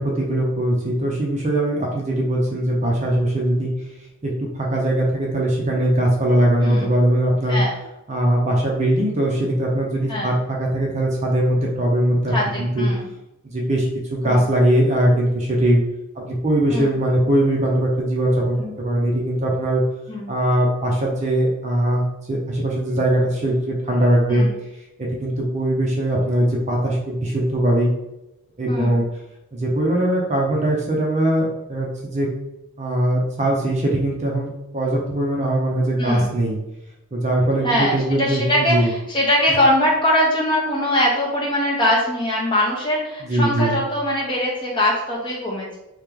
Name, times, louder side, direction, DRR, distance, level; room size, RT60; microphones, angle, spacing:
voice 1, 0.0-3.7 4.2-7.6 8.1-12.9 13.4-13.9 14.1-15.8 16.1-19.8 20.3-24.5 25.0-27.9 28.6-29.1 29.5-32.3 32.8-36.6 37.1-38.9 43.2-43.8, right 1 dB, 35° right, -2 dB, 0.6 m, -20 dB
voice 2, 12.3-13.1 14.2-14.4 16.7-16.9 18.6-18.7 20.1-20.3 24.3-24.5 28.7-29.0 36.0-36.3 37.6-45.8, left 1 dB, 20° left, -4 dB, 0.9 m, -22 dB
3.2 x 2.9 x 3.6 m, 0.92 s
head